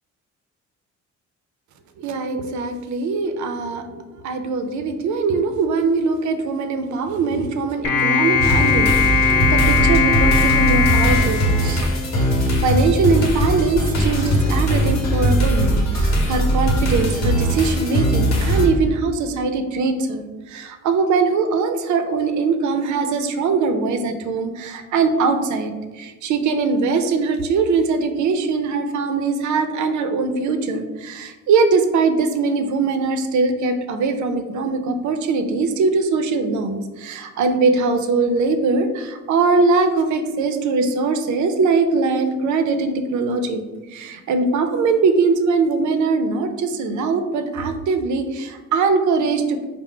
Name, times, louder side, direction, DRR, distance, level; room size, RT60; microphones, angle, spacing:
voice 1, 2.0-11.9 12.6-49.7, right 4 dB, 70° right, 7 dB, 0.5 m, -21 dB
sound 1, 7.8-12.3, left 4 dB, 80° left, 0.6 m, -19 dB
sound 2, 8.4-18.7, equal, 60° left, 0.9 m, -20 dB
4.4 x 2.0 x 3.7 m, 1.3 s
cardioid pair, 90°, 30 cm